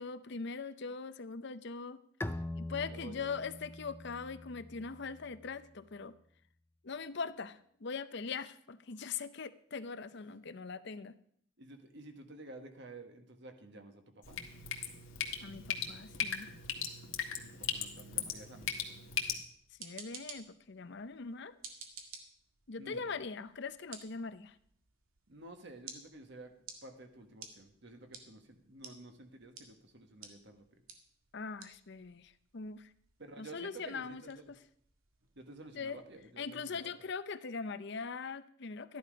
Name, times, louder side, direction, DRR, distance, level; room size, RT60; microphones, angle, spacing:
voice 1, 0.0-2.0 2.6-6.1 6.8-11.1 15.4-16.5 19.8-21.5 22.7-24.6 31.3-32.9 33.4-34.6 35.7-36.0 36.4-39.0, left 5 dB, 55° left, 14 dB, 0.6 m, -41 dB
Bowed string instrument, 2.2-5.7, left 1 dB, 10° left, 0.5 m, -43 dB
voice 2, 2.8-3.4 11.6-14.4 17.4-19.1 22.8-23.0 25.3-26.5 26.8-30.6 33.2-34.4 35.3-36.8, right 2 dB, 55° right, 6 dB, 1.5 m, -51 dB
Drip, 14.2-19.4, left 7 dB, 70° left, 1.7 m, -38 dB
sound 1, 19.5-36.3, right 5 dB, 85° right, 2.0 m, -55 dB
13.5 x 11.0 x 5.2 m, 0.66 s
head